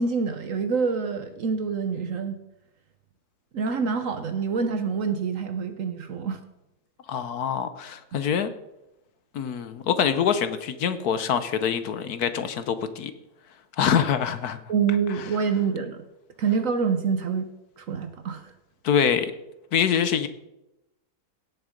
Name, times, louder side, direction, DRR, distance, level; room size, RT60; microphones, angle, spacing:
voice 1, 0.0-2.4 3.5-6.4 8.1-8.2 14.7-16.0 16.4-17.4 17.8-18.5, right 5 dB, 55° right, 9 dB, 1.1 m, -26 dB
voice 2, 7.1-8.5 9.3-13.1 13.8-14.6 18.8-19.3 19.7-20.3, left 8 dB, 65° left, 12 dB, 1.2 m, -25 dB
17.0 x 6.7 x 5.1 m, 0.92 s
omnidirectional pair, 1.9 m